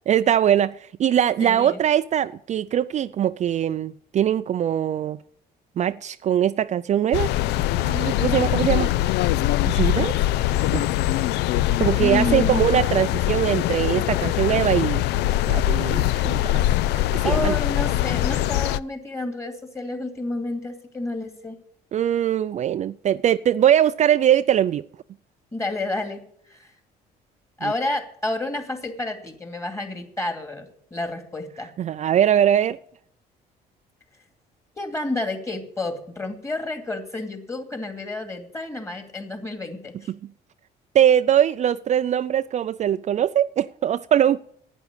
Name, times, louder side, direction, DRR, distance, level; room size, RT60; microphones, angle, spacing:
voice 1, 0.1-5.2 5.8-7.3 7.8-8.9 9.6-10.2 10.7-10.8 11.8-15.0 15.5-16.6 17.1-17.6 21.9-24.8 27.6-27.7 31.8-32.8 40.9-44.4, right 10 dB, 45° right, 0.4 m, -21 dB
voice 2, 1.4-1.8 12.0-12.6 17.2-21.6 25.5-26.7 27.6-31.7 34.8-40.1, left 2 dB, 15° left, 2.5 m, -30 dB
sound 1, 7.1-18.8, left 14 dB, 80° left, 0.4 m, -22 dB
11.0 x 9.4 x 8.8 m
cardioid pair, 110°, 17 cm